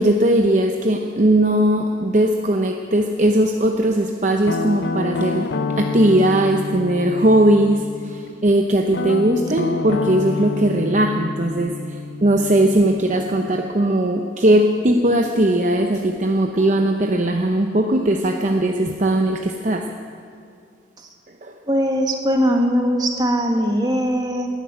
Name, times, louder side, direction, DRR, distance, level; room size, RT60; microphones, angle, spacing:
voice 1, 0.0-19.9 21.4-21.6, right 1 dB, 40° right, 3 dB, 0.8 m, -19 dB
Guitar, 4.5-8.2 8.9-13.7, left 3 dB, 65° left, 0.7 m, -28 dB
voice 2, 21.7-24.5, equal, 20° right, 2 dB, 1.7 m, -20 dB
13.5 x 10.5 x 9.6 m, 2.3 s
head